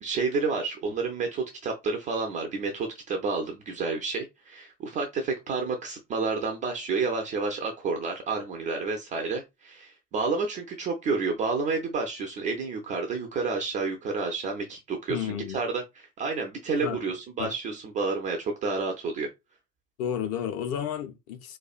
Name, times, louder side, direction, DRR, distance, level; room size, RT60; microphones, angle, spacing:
voice 1, 0.0-15.3 15.5-19.3, right 4 dB, 20° right, 0.3 m, -30 dB
voice 2, 15.1-15.6 16.8-17.0 17.4-17.5 20.0-21.6, left 9 dB, 35° left, 0.5 m, -32 dB
4.3 x 2.2 x 2.4 m
figure-of-eight pair, 70°, 48 cm